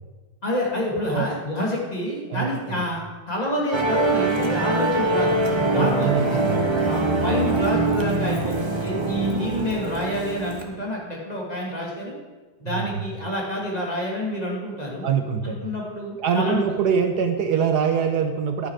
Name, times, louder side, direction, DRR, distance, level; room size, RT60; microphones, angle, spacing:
voice 1, 0.4-3.0 3.3-6.1 6.9-12.1 12.6-15.0 15.4-16.6, left 1 dB, 20° left, -3 dB, 2.5 m, -28 dB
voice 2, 2.3-2.8 5.7-6.7 12.7-12.9 15.0-15.6 16.2-18.7, right 7 dB, 70° right, 7 dB, 1.4 m, -24 dB
Musical instrument, 3.7-10.6, right 2 dB, 20° right, 0.9 m, -23 dB
11.5 x 10.0 x 4.9 m, 1.3 s
omnidirectional pair, 1.9 m